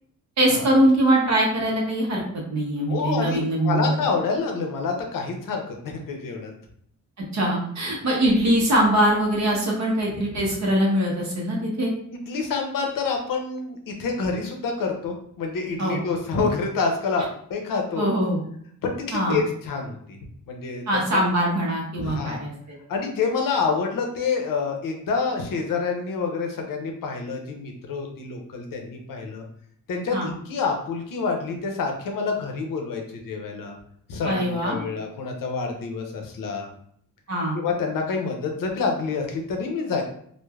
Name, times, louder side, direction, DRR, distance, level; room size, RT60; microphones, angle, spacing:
voice 1, 0.4-3.9 7.3-11.9 15.8-16.0 18.0-18.4 19.1-19.4 20.9-22.8 30.1-30.3 34.2-34.8 37.3-37.6, right 1 dB, 55° right, -2 dB, 0.7 m, -22 dB
voice 2, 2.9-6.5 10.1-10.4 12.1-17.2 17.5-18.1 18.8-20.2 20.5-20.8 21.1-21.2 22.0-22.4 22.9-29.4 29.9-33.8 34.1-36.7 37.5-40.0, left 4 dB, 80° left, 2 dB, 0.6 m, -27 dB
3.1 x 2.1 x 2.2 m, 0.66 s
wide cardioid pair, 135°, 33 cm